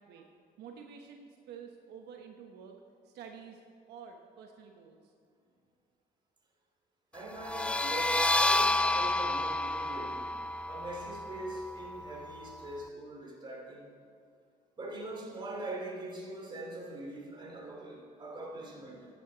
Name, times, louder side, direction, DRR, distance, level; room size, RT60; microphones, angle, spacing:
voice 1, 0.6-2.8 3.0-3.6 3.9-5.1, right 7 dB, 80° right, 3 dB, 1.1 m, -49 dB
voice 2, 7.1-10.4 10.7-13.9 14.8-19.1, right 2 dB, 25° right, 0 dB, 2.7 m, -42 dB
sound 1, 7.4-12.8, left 2 dB, 5° left, 0.5 m, -30 dB
13.5 x 9.5 x 4.0 m, 2.4 s
cardioid pair, 110°, 17 cm